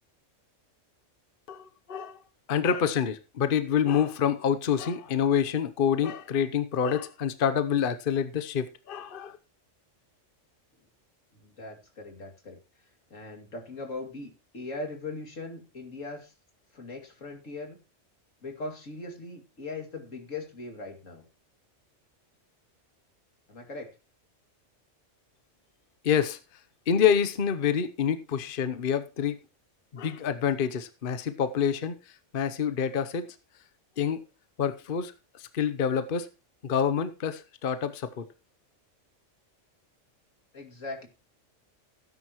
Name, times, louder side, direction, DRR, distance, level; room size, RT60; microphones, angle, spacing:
voice 1, 1.5-2.2 2.5-9.4 26.0-26.4 26.9-29.4 29.9-31.9 32.3-33.4 34.0-34.2 34.6-36.3 36.6-38.3, left 8 dB, 50° left, 11 dB, 1.0 m, -27 dB
voice 2, 11.4-12.6 13.1-16.3 16.7-17.8 18.4-21.2 23.5-24.0 40.5-41.1, left 3 dB, 85° left, 4 dB, 2.9 m, -40 dB
17.0 x 9.6 x 3.0 m, 0.30 s
omnidirectional pair, 1.3 m